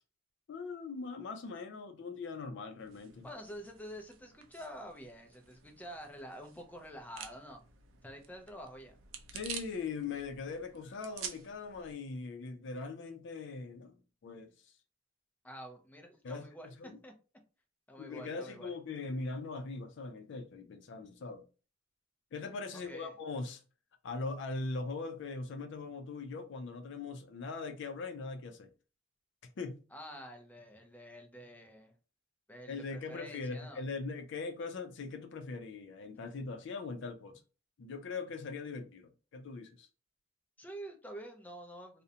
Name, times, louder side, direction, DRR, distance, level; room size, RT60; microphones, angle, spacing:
voice 1, 0.5-3.3 9.3-14.7 16.2-16.4 16.8-17.0 18.0-21.4 22.3-23.6 24.0-28.7 29.6-29.8 32.7-37.4 37.8-39.9, left 4 dB, 65° left, 0.4 m, -41 dB
sound 1, 2.8-11.9, right 7 dB, 85° right, 0.4 m, -49 dB
voice 2, 3.2-7.6 8.0-9.0 15.4-17.1 17.9-18.7 22.7-23.1 29.9-31.9 32.5-33.8 40.6-42.0, equal, 10° left, 0.5 m, -48 dB
2.5 x 2.1 x 2.7 m
head